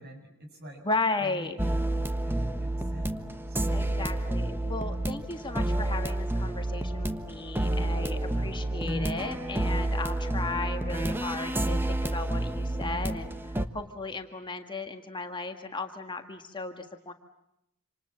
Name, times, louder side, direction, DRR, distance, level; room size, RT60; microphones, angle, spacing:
voice 1, 0.0-0.8 1.2-4.1 7.7-9.2, equal, 50° right, 4 dB, 7.4 m, -46 dB
voice 2, 0.8-1.6 3.7-17.1, left 3 dB, 20° left, 4 dB, 1.7 m, -35 dB
sound 1, 1.6-13.7, right 1 dB, 10° right, 1.2 m, -29 dB
27.5 x 27.5 x 7.5 m, 0.85 s
head